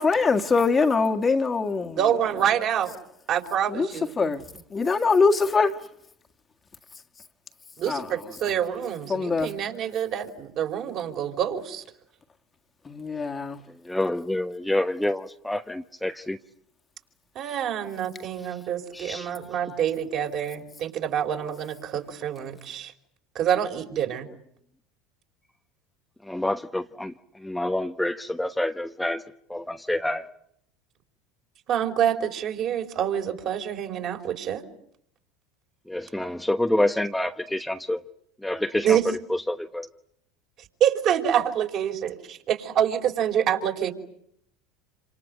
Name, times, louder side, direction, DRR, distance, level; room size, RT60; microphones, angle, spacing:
voice 1, 0.0-2.0 3.7-3.9 4.2-4.4 4.7-5.7 7.9-8.1 9.1-9.5 12.9-13.6, left 4 dB, 25° left, 1.9 m, -22 dB
voice 2, 2.0-2.9 3.3-4.3 7.8-11.8 17.3-22.9 23.3-24.3 31.7-34.6 38.8-39.1 40.8-43.9, right 9 dB, 50° right, 4.9 m, -26 dB
voice 3, 13.9-16.4 18.9-19.3 26.3-27.1 27.4-29.2 29.5-30.2 35.9-38.0 38.4-39.9, left 1 dB, 5° left, 1.1 m, -27 dB
28.0 x 27.0 x 7.9 m
hypercardioid pair, 75°, 0 cm